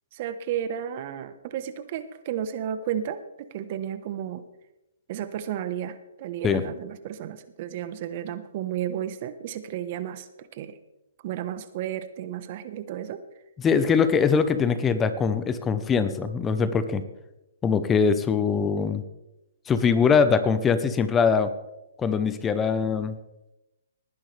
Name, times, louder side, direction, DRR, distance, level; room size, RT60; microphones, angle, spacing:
voice 1, 0.1-4.4 5.1-10.8 11.2-13.2, right 10 dB, 45° right, 12 dB, 1.2 m, -33 dB
voice 2, 13.6-17.0 17.6-19.0 19.7-21.5 22.0-23.1, left 6 dB, 15° left, 12 dB, 0.8 m, -22 dB
20.0 x 10.5 x 3.4 m, 0.94 s
hypercardioid pair, 140°, 0 cm